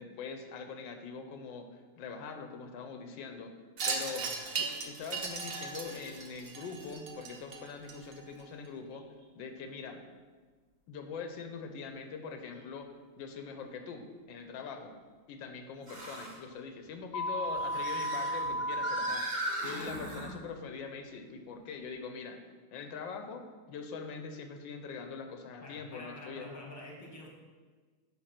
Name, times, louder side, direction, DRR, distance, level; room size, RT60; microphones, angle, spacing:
voice 1, 0.0-3.5 3.9-4.2 4.6-9.0 9.3-10.1 10.9-12.9 13.2-15.0 15.3-22.4 22.7-26.5, left 5 dB, 90° left, 6 dB, 1.5 m, -43 dB
Wind chime, 3.8-8.4, right 4 dB, 50° right, 0.7 m, -37 dB
voice 2, 4.0-4.3 25.6-27.3, left 2 dB, 10° left, -1 dB, 1.3 m, -47 dB
sound 1, 5.9-6.1 6.8-6.9 8.9-9.0 12.6-12.7 15.8-16.4 17.3-20.3, right 1 dB, 25° right, 1.3 m, -39 dB
sound 2, 17.1-19.1, equal, 70° left, 1.2 m, -33 dB
9.2 x 3.8 x 5.9 m, 1.4 s
omnidirectional pair, 2.0 m